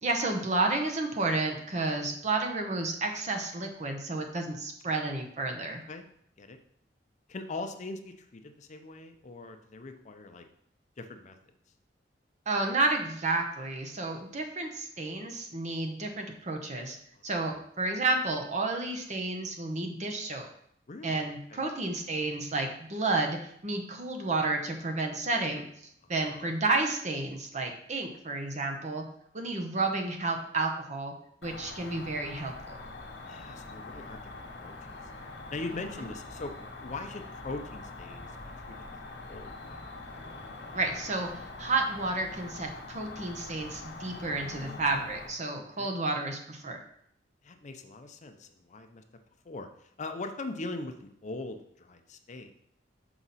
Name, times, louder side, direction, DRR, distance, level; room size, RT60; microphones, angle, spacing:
voice 1, 0.0-5.8 12.5-17.0 17.2-20.5 21.0-23.4 23.6-25.7 26.1-29.0 29.3-31.1 31.4-32.8 36.0-36.1 40.7-46.8, right 3 dB, 40° right, 3 dB, 0.9 m, -31 dB
voice 2, 7.3-10.4 11.0-11.4 17.1-17.2 20.9-21.2 21.5-21.6 26.2-26.6 33.3-35.0 35.5-38.3 38.7-38.8 39.3-39.9 44.4-45.0 45.5-46.0 47.4-49.0 49.5-49.7 50.0-52.5, left 2 dB, 40° left, 6 dB, 0.5 m, -41 dB
Cricket, 31.4-45.3, left 2 dB, 65° left, 1.0 m, -44 dB
5.9 x 4.9 x 4.1 m, 0.70 s
head